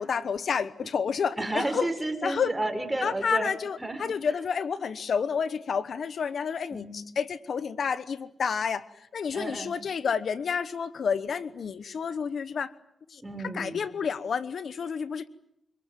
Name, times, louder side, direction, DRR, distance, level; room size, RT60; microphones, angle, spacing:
voice 1, 0.0-1.9 2.2-2.5 3.0-8.8 9.1-12.7 13.1-13.2 13.5-15.3, left 6 dB, 70° left, 15 dB, 1.1 m, -30 dB
voice 2, 1.4-3.5 3.8-4.1 6.7-6.9 9.3-9.7 13.2-13.8, right 2 dB, 15° right, 7 dB, 5.3 m, -31 dB
28.0 x 20.5 x 9.3 m, 0.77 s
cardioid pair, 75°, 0 cm